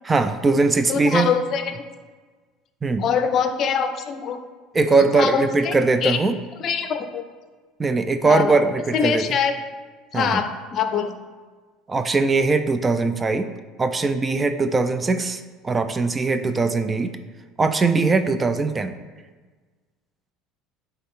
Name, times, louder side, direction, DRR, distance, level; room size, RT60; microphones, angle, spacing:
voice 1, 0.0-1.3 2.8-3.0 4.7-6.4 7.8-9.2 10.1-10.4 11.9-13.5 13.8-17.2 17.6-18.9, right 3 dB, 20° right, 9 dB, 0.4 m, -21 dB
voice 2, 0.9-1.8 3.0-4.4 4.9-5.7 6.0-6.2 6.6-7.2 8.2-8.5 8.9-9.5 10.1-10.5 10.7-11.1, left 7 dB, 50° left, 8 dB, 0.6 m, -23 dB
8.5 x 3.4 x 3.7 m, 1.4 s
supercardioid pair, 100°, 0 cm